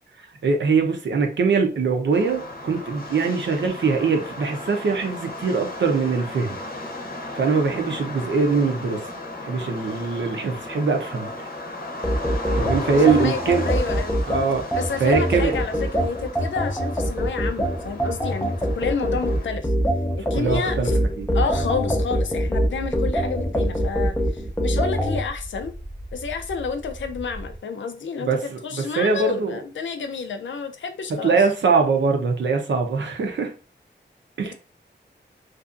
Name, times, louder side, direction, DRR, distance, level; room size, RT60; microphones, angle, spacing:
voice 1, 0.2-6.6 7.4-9.0 9.4-11.3 12.5-13.7 14.3-14.6 15.0-15.5 20.3-20.9 21.2-21.3 28.3-29.6 31.2-33.5 34.4-34.5, right 4 dB, 75° right, 0.6 m, -22 dB
sound 1, 2.1-19.5, left 2 dB, 55° left, 0.7 m, -35 dB
sound 2, 12.0-25.2, equal, 10° left, 0.5 m, -24 dB
voice 2, 12.9-13.4 13.7-14.2 14.8-19.7 20.2-21.0 21.3-25.7 26.1-31.4, left 5 dB, 80° left, 0.4 m, -30 dB
sound 3, 20.6-27.6, right 1 dB, 25° right, 0.7 m, -38 dB
2.6 x 2.4 x 2.4 m
wide cardioid pair, 85°, 19 cm